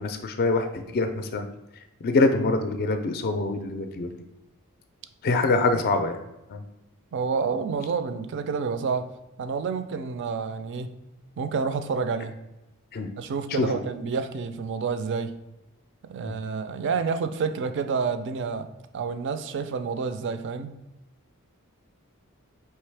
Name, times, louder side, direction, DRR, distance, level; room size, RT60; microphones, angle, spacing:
voice 1, 0.0-1.4 2.0-4.1 5.2-6.2 6.5-6.6 12.9-13.1 13.5-13.7 16.2-16.3, left 3 dB, 45° left, 7 dB, 0.4 m, -24 dB
voice 2, 7.1-9.1 9.4-10.9 11.4-12.3 13.2-15.3 16.1-18.7 18.9-20.8, right 5 dB, 55° right, 10 dB, 0.4 m, -29 dB
4.5 x 3.1 x 3.3 m, 0.94 s
head